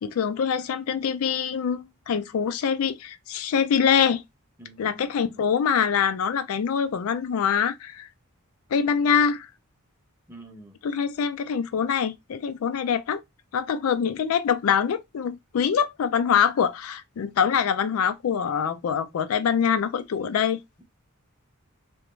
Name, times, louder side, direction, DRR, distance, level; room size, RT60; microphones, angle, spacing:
voice 1, 0.0-4.2 4.8-8.1 8.7-9.5 10.8-13.2 13.5-20.6, left 7 dB, 80° left, 0.4 m, -24 dB
voice 2, 4.6-5.5 10.3-10.8, right 1 dB, 10° right, 0.6 m, -48 dB
2.4 x 2.2 x 3.0 m
head